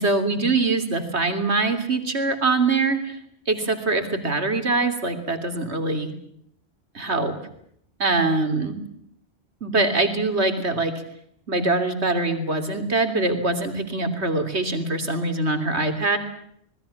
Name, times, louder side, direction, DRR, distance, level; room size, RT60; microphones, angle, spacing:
voice 1, 0.0-3.2 3.5-6.1 7.0-7.3 8.0-8.8 9.6-10.9 11.5-16.2, right 3 dB, 85° right, 8 dB, 3.6 m, -23 dB
26.5 x 20.5 x 7.2 m, 0.70 s
omnidirectional pair, 1.1 m